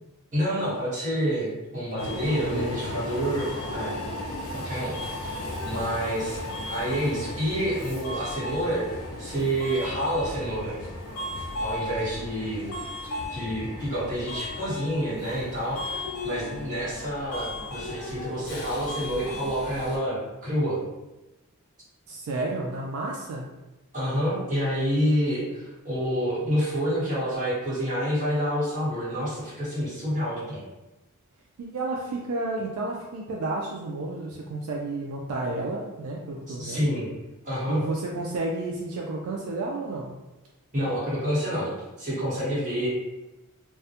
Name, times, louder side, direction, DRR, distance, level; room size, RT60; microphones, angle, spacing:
voice 1, 0.3-4.0 4.5-6.4 6.7-8.9 9.2-10.8 11.6-12.7 13.0-20.8 23.9-30.6 36.6-37.1 37.4-37.8 40.7-42.9, equal, 35° right, -10 dB, 1.2 m, -28 dB
Subway metro underground, 2.0-20.0, left 1 dB, 75° left, 0.4 m, -35 dB
voice 2, 2.4-2.8 22.1-23.5 31.6-36.9 37.7-40.1, right 2 dB, 75° right, -2 dB, 0.3 m, -31 dB
2.2 x 2.0 x 2.8 m, 1.0 s
head